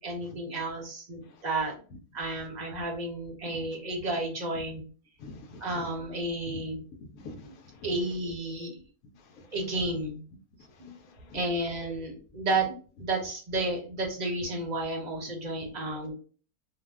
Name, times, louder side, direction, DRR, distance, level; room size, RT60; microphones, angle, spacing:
voice 1, 0.0-1.7 2.1-4.8 5.6-6.8 7.8-8.8 9.5-10.2 10.8-10.9 11.2-16.1, right 2 dB, 40° right, 1 dB, 0.6 m, -32 dB
voice 2, 5.2-5.9 6.5-6.6 7.0-7.9 9.2-9.5 10.7-11.4, left 3 dB, 75° left, 3 dB, 1.1 m, -47 dB
2.7 x 2.1 x 3.3 m, 0.39 s
omnidirectional pair, 1.6 m